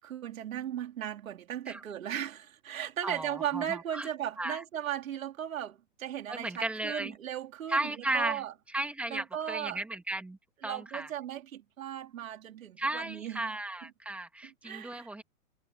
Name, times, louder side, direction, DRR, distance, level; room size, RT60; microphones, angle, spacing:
voice 1, 0.0-8.5 9.1-9.8 10.6-13.5 14.4-15.1, right 10 dB, 65° right, 3.8 m, -37 dB
voice 2, 3.0-4.1 4.4-4.6 6.3-7.2 7.7-8.4 8.7-11.1 12.8-15.2, right 2 dB, 5° right, 1.7 m, -35 dB
hypercardioid pair, 165°, 43 cm